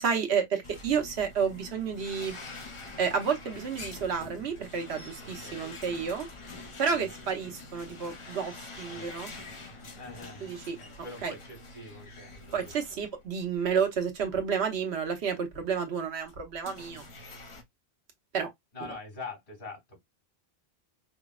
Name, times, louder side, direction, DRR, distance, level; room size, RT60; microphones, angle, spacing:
voice 1, 0.0-2.4 3.0-6.3 6.8-9.3 10.4-10.8 11.2-11.3 12.5-17.0 18.3-18.5, right 6 dB, 90° right, 1.1 m, -30 dB
sound 1, 0.6-13.7 14.1-14.2 15.0-15.1 16.2-17.6, left 3 dB, 35° left, 0.6 m, -46 dB
voice 2, 5.2-5.8 6.9-7.2 8.9-9.1 10.0-10.5 10.7-12.7 18.7-20.0, left 3 dB, 80° left, 3.0 m, -44 dB
5.0 x 2.0 x 2.3 m
omnidirectional pair, 1.1 m